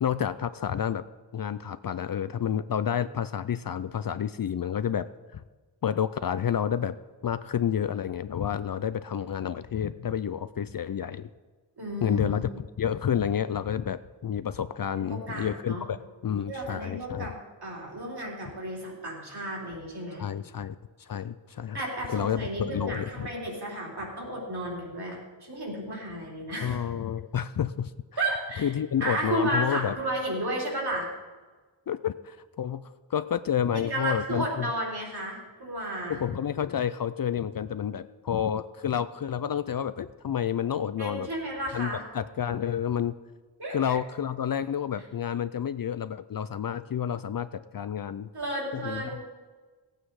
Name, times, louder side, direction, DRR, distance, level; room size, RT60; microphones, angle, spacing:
voice 1, 0.0-1.0 1.3-5.4 5.8-7.0 7.2-11.3 12.0-12.5 12.8-16.0 16.2-17.3 20.2-21.8 22.1-23.3 26.6-27.9 28.6-30.0 31.9-34.7 36.1-41.3 41.7-43.1 43.7-48.3 48.7-49.0, left 9 dB, 50° left, 13 dB, 0.4 m, -30 dB
voice 2, 11.8-12.5 15.0-15.9 16.5-17.4 17.6-20.2 21.7-26.8 28.2-28.7 29.0-31.1 33.7-36.2 41.0-42.0 43.6-44.0 48.3-49.2, right 1 dB, 55° right, -3 dB, 4.1 m, -33 dB
16.5 x 9.0 x 4.8 m, 1.3 s
wide cardioid pair, 75°, 47 cm